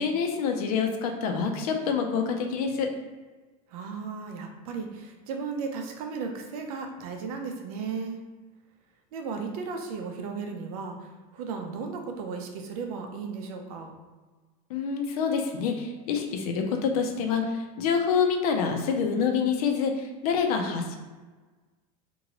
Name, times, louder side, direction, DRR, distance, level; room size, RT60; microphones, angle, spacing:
voice 1, 0.0-2.9 14.7-21.0, left 6 dB, 80° left, 4 dB, 0.5 m, -27 dB
voice 2, 3.7-8.2 9.1-13.9, right 5 dB, 80° right, 3 dB, 0.6 m, -35 dB
2.9 x 2.6 x 2.9 m, 1.3 s
supercardioid pair, 175°, 19 cm